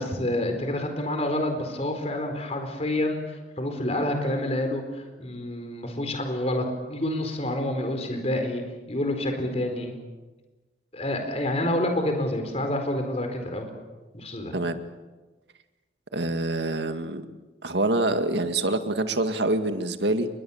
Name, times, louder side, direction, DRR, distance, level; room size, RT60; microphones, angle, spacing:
voice 1, 0.0-8.6 8.9-9.9 10.9-13.7 14.1-14.6, left 1 dB, 35° left, 5 dB, 4.4 m, -28 dB
voice 2, 16.1-17.2 17.6-20.3, right 2 dB, 80° right, 8 dB, 2.0 m, -25 dB
29.5 x 22.5 x 7.2 m, 1.2 s
head